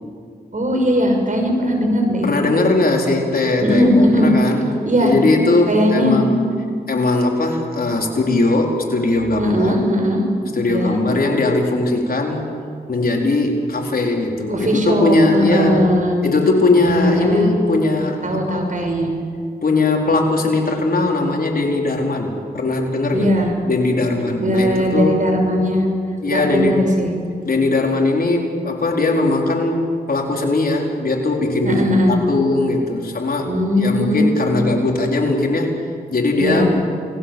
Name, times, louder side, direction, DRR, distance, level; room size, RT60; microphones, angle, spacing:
voice 1, 0.5-2.3 2.5-2.6 3.6-4.3 4.8-5.2 5.7-6.2 9.4-10.2 10.7-11.0 14.5-16.2 16.8-17.6 18.2-19.1 23.1-23.5 24.4-25.9 26.3-27.1 31.6-32.2 33.5-34.2 36.4-36.8, equal, 50° right, 3 dB, 6.2 m, -18 dB
voice 2, 2.2-4.7 5.0-6.4 6.9-9.8 10.5-12.6 12.9-15.9 16.2-18.7 19.6-23.3 23.7-25.2 26.2-26.8 27.4-36.8, left 2 dB, 60° left, 0 dB, 4.5 m, -19 dB
29.0 x 20.5 x 7.4 m, 2.2 s
cardioid pair, 55°, 17 cm